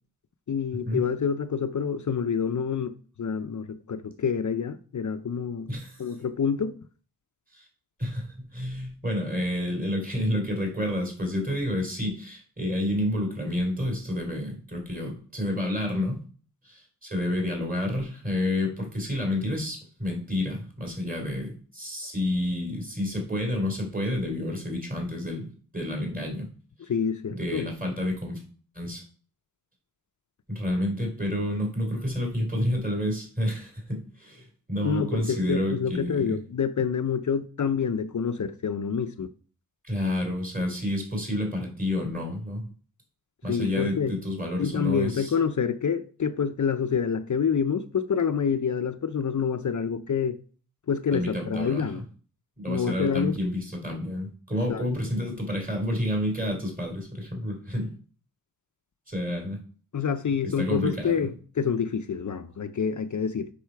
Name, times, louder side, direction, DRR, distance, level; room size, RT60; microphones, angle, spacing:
voice 1, 0.5-5.7 6.0-6.8 26.9-27.7 34.8-39.3 43.5-44.1 44.6-50.4 50.9-52.0 52.7-53.4 54.7-54.9 59.9-63.5, left 6 dB, 55° left, 0.7 m, -27 dB
voice 2, 5.7-6.1 7.6-7.7 8.0-16.2 16.6-26.5 27.3-28.4 28.8-29.0 30.5-36.4 39.8-42.6 43.4-45.3 51.1-52.0 52.6-57.9 59.1-59.6 60.4-61.3, left 1 dB, 25° right, 3.5 m, -29 dB
8.2 x 5.6 x 4.6 m
wide cardioid pair, 70°, 36 cm